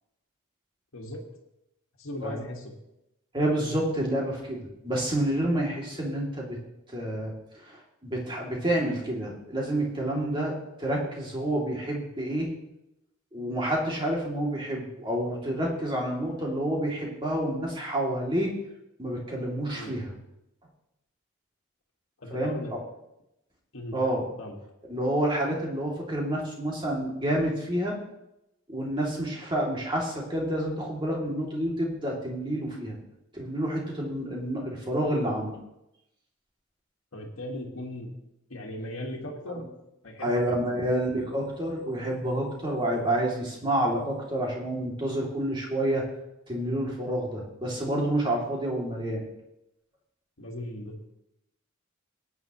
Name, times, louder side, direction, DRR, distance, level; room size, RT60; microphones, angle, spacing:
voice 1, 0.9-1.2 2.0-2.7 19.7-20.0 22.2-22.8 23.7-24.0 24.4-24.6 37.1-38.1 38.5-39.6 40.0-40.6 50.4-51.1, left 1 dB, 75° left, -1 dB, 1.8 m, -38 dB
voice 2, 3.3-6.6 6.9-12.5 13.3-18.5 19.0-20.1 22.3-22.8 23.9-24.3 24.9-28.0 28.7-33.0 33.3-35.6 39.5-39.6 40.2-46.1 46.5-49.2, right 1 dB, 20° right, -3 dB, 2.6 m, -29 dB
18.5 x 9.4 x 3.1 m, 0.87 s
head